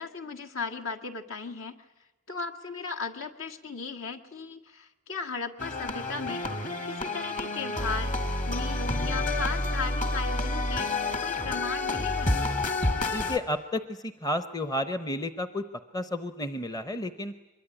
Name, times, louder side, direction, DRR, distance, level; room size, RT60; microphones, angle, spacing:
voice 1, 0.0-1.8 2.3-8.1 8.5-12.4, left 4 dB, 65° left, 3 dB, 1.9 m, -36 dB
sound 1, 5.6-13.4, left 2 dB, 35° left, 2.1 m, -29 dB
voice 2, 13.1-15.6 15.9-17.3, left 1 dB, 15° left, 10 dB, 0.8 m, -31 dB
24.0 x 22.0 x 9.9 m, 1.1 s
head